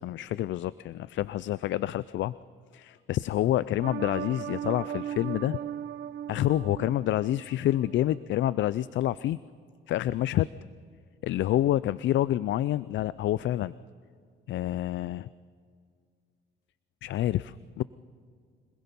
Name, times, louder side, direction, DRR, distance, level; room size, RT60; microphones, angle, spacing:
voice 1, 0.0-2.4 2.7-5.6 6.3-9.4 9.9-10.5 11.2-13.7 14.5-15.3 17.0-17.8, left 13 dB, 70° left, 18 dB, 0.5 m, -28 dB
sound 1, 3.8-8.0 8.4-8.5, right 10 dB, 70° right, 0.8 m, -37 dB
26.0 x 20.5 x 5.4 m, 2.1 s
cardioid pair, 90°, 20 cm